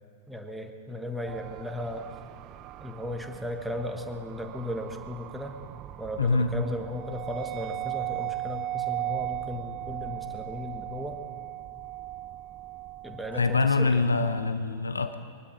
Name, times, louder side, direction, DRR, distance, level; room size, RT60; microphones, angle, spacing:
voice 1, 0.3-2.1 2.8-5.6 6.0-11.2 13.0-14.1, left 1 dB, 5° right, 4 dB, 1.4 m, -36 dB
sound 1, 1.3-14.5, right 15 dB, 40° right, 0.4 m, -38 dB
voice 2, 6.2-6.5 13.3-15.1, left 3 dB, 75° left, 10 dB, 0.6 m, -24 dB
22.0 x 12.0 x 5.3 m, 2.1 s
figure-of-eight pair, 90°, 0 cm